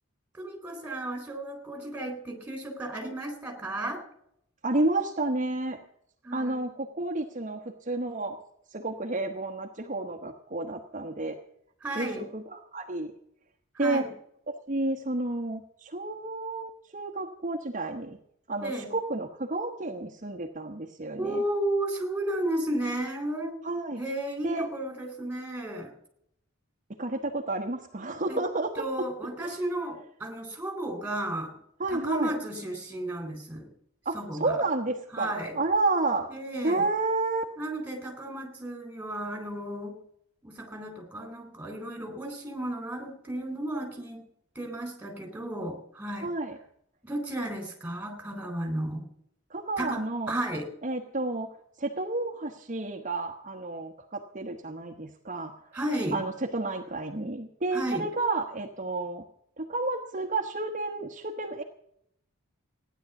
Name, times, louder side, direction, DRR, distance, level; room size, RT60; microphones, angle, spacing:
voice 1, 0.3-4.0 6.2-6.6 11.8-12.3 13.7-14.1 18.6-18.9 21.2-23.6 24.0-25.9 28.3-28.4 28.8-31.6 31.9-33.7 34.1-34.6 35.1-35.6 36.3-36.9 37.6-39.9 40.4-44.2 44.6-46.3 47.0-49.1 49.8-50.7 55.7-56.2 57.7-58.1, right 1 dB, 5° right, 3 dB, 3.9 m, -33 dB
voice 2, 4.6-5.8 6.3-8.4 8.7-11.4 11.9-12.1 12.3-13.1 13.8-14.0 14.5-18.2 18.5-21.4 23.6-24.0 24.4-24.7 27.0-29.1 29.4-29.6 31.8-32.4 34.0-36.3 36.6-37.4 46.2-46.6 49.5-50.3 50.8-51.5 51.8-55.7 56.1-59.2 59.6-61.6, right 2 dB, 35° right, 2 dB, 1.1 m, -31 dB
16.0 x 10.5 x 7.0 m, 0.73 s
head